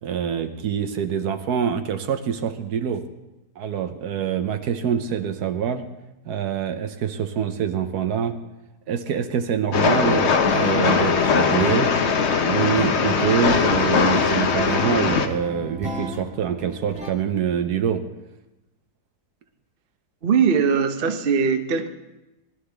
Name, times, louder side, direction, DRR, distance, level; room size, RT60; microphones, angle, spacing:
voice 1, 0.0-3.0 3.6-5.8 6.2-8.4 8.9-11.9 12.4-18.0, right 8 dB, 75° right, 8 dB, 1.3 m, -25 dB
Train, 9.7-15.3, left 5 dB, 50° left, 0.9 m, -20 dB
sound 1, 9.8-17.1, equal, 5° right, 1.2 m, -33 dB
voice 2, 20.2-21.9, right 6 dB, 45° right, 6 dB, 0.8 m, -20 dB
20.0 x 11.5 x 3.4 m, 0.99 s
omnidirectional pair, 1.7 m